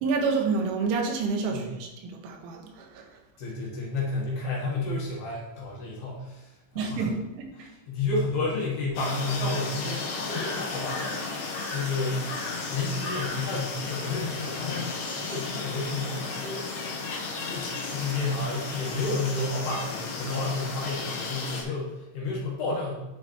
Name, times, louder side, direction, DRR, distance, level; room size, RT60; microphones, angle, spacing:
voice 1, 0.0-3.1 6.8-7.7, right 4 dB, 80° right, 2 dB, 3.3 m, -29 dB
voice 2, 3.4-7.1 7.6-11.4 11.7-12.3 12.7-14.9 15.2-16.9 17.4-23.1, left 3 dB, 65° left, -4 dB, 2.9 m, -31 dB
sound 1, 8.9-21.6, left 3 dB, 90° left, 1.9 m, -34 dB
11.0 x 4.6 x 3.0 m, 1.0 s
omnidirectional pair, 5.6 m